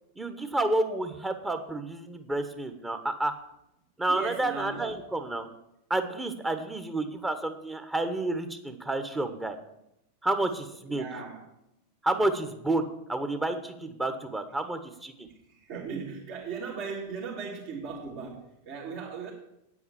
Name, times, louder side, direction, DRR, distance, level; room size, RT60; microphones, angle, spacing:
voice 1, 0.2-3.3 4.0-5.5 5.9-9.6 10.2-11.0 12.0-15.3, right 2 dB, 10° right, 8 dB, 1.2 m, -30 dB
voice 2, 4.1-4.9 10.9-11.4 15.5-19.3, right 5 dB, 45° right, -5 dB, 2.3 m, -38 dB
9.4 x 8.5 x 7.1 m, 0.83 s
figure-of-eight pair, 90°, 0 cm